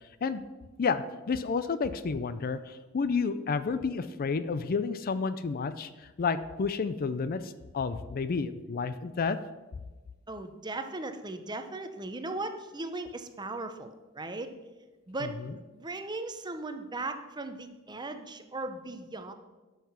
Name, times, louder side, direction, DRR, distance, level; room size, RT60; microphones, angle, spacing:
voice 1, 0.8-9.4, left 5 dB, 45° left, 13 dB, 0.4 m, -30 dB
voice 2, 10.3-14.5 15.1-15.3 15.7-19.3, right 2 dB, 20° right, 8 dB, 0.7 m, -37 dB
12.0 x 5.7 x 5.7 m, 1.2 s
head